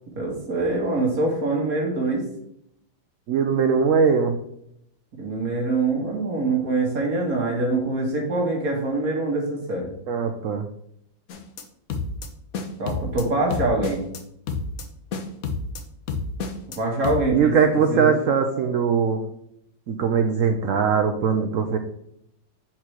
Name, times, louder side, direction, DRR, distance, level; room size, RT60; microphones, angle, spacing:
voice 1, 0.1-2.2 5.1-9.9 12.8-14.0 16.8-17.5 17.9-18.2, right 2 dB, 50° right, -1 dB, 1.7 m, -24 dB
voice 2, 3.3-4.4 10.1-10.6 17.3-19.2 19.9-21.8, right 6 dB, 85° right, 6 dB, 0.7 m, -21 dB
sound 1, 11.3-11.6 11.9-12.3 12.5-13.2 13.5-14.2 14.5-14.8 15.1-15.8 16.1-16.8 17.0-17.2, left 4 dB, 60° left, 1.0 m, -29 dB
4.8 x 4.5 x 5.8 m, 0.74 s
omnidirectional pair, 2.1 m